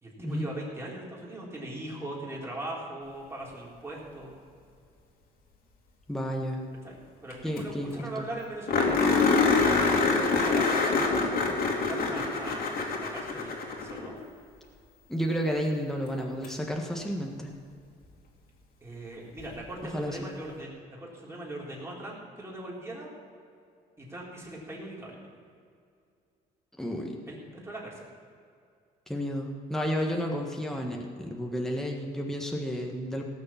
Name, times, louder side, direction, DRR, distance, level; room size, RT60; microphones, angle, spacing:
voice 1, 0.0-4.4 6.8-11.3 11.6-14.2 18.8-20.7 21.0-23.1 24.0-25.2 27.3-28.1 30.7-30.9, right 1 dB, 15° right, -4 dB, 4.0 m, -40 dB
voice 2, 6.1-6.6 7.4-8.3 15.1-17.5 19.9-20.3 26.8-27.2 29.1-33.2, equal, ahead, 1 dB, 1.5 m, -31 dB
sound 1, 7.3-7.4 7.6-7.7 8.0-8.1 8.7-14.1 16.4-16.5 19.4-19.5, left 4 dB, 65° left, 2.7 m, -25 dB
17.5 x 6.7 x 7.3 m, 2.3 s
cardioid pair, 110°, 17 cm